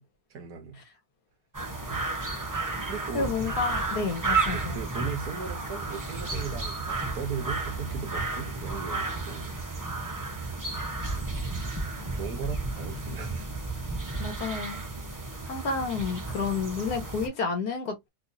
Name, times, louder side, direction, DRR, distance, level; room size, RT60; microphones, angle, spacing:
voice 1, 0.3-0.8 1.9-2.1 2.9-3.3 4.5-9.5 12.1-13.5, right 6 dB, 70° right, 1.5 m, -37 dB
sound 1, 1.5-17.3, right 3 dB, 20° right, 0.6 m, -32 dB
voice 2, 3.1-4.8 14.2-14.8 15.5-18.1, left 4 dB, 75° left, 1.7 m, -30 dB
4.0 x 2.7 x 2.6 m
omnidirectional pair, 1.7 m